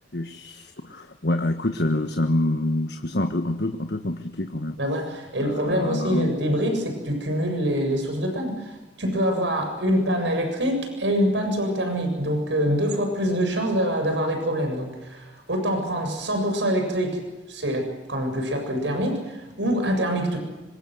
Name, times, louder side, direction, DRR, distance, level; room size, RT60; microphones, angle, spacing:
voice 1, 0.1-4.8 5.4-6.3, left 1 dB, 65° left, 6 dB, 1.5 m, -26 dB
voice 2, 4.8-17.2 17.5-20.4, equal, 85° right, 5 dB, 7.3 m, -25 dB
25.5 x 25.0 x 7.9 m, 1.1 s
head